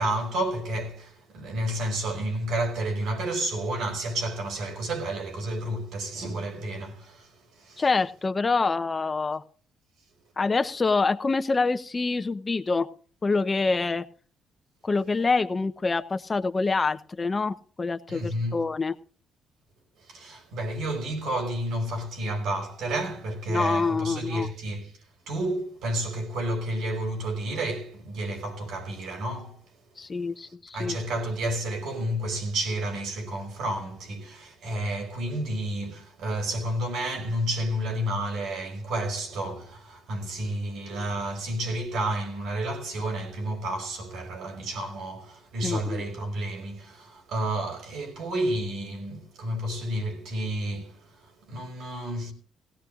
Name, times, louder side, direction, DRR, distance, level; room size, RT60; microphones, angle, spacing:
voice 1, 0.0-7.8 18.1-18.6 20.1-24.9 25.3-29.6 30.4-52.3, right 1 dB, 80° right, 4.9 m, -31 dB
voice 2, 7.8-9.4 10.4-12.9 13.2-14.0 14.8-18.9 23.5-24.5 30.0-30.9 45.6-46.0, left 4 dB, 30° left, 0.9 m, -26 dB
18.0 x 16.5 x 2.5 m
cardioid pair, 90°, 0 cm